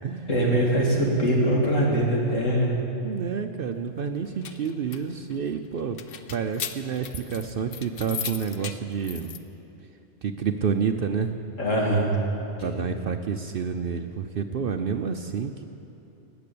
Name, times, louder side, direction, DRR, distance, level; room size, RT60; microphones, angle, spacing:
voice 1, 0.3-2.8 11.6-12.1 12.6-13.0, right 1 dB, 75° left, -3 dB, 2.8 m, -23 dB
voice 2, 3.0-6.0 6.3-9.3 10.2-11.4 12.6-15.6, right 6 dB, 55° right, 7 dB, 0.7 m, -29 dB
sound 1, 4.1-9.4, left 8 dB, 55° left, 0.7 m, -38 dB
18.5 x 6.9 x 8.5 m, 2.9 s
omnidirectional pair, 1.3 m